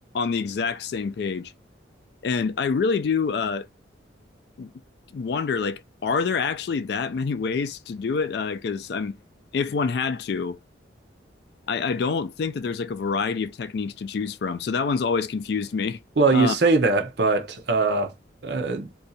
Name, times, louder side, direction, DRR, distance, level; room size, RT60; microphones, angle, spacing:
voice 1, 0.1-1.5 2.2-3.7 4.6-4.7 5.1-9.2 9.5-10.6 11.7-16.0 16.3-16.5, left 5 dB, 55° left, 0.3 m, -26 dB
voice 2, 16.2-18.1 18.4-18.9, right 3 dB, 60° right, 0.6 m, -21 dB
2.6 x 2.4 x 4.0 m
head